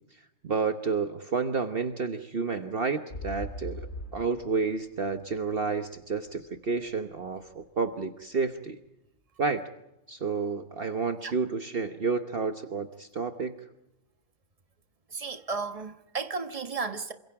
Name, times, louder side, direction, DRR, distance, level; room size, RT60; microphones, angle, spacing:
voice 1, 0.4-3.9 4.1-8.8 9.4-9.6 10.1-13.5, right 4 dB, 50° right, 1.3 m, -30 dB
sound 1, 3.1-7.0 7.5-7.6, left 1 dB, 55° left, 3.3 m, -40 dB
voice 2, 15.1-17.1, right 4 dB, 30° right, 1.5 m, -34 dB
28.0 x 26.0 x 4.9 m
omnidirectional pair, 1.3 m